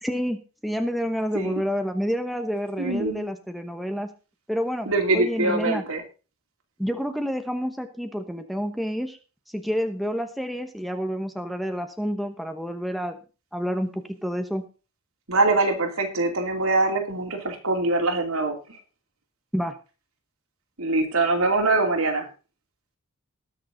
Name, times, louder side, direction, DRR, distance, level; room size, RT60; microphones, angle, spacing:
voice 1, 0.0-4.1 4.5-5.8 6.8-9.2 9.5-13.2 13.5-14.6 19.5-19.8, equal, ahead, 7 dB, 0.9 m, -29 dB
voice 2, 2.8-3.2 4.9-6.0 15.3-18.8 20.8-22.3, right 2 dB, 75° right, 3 dB, 2.7 m, -23 dB
19.5 x 6.7 x 3.9 m, 0.34 s
head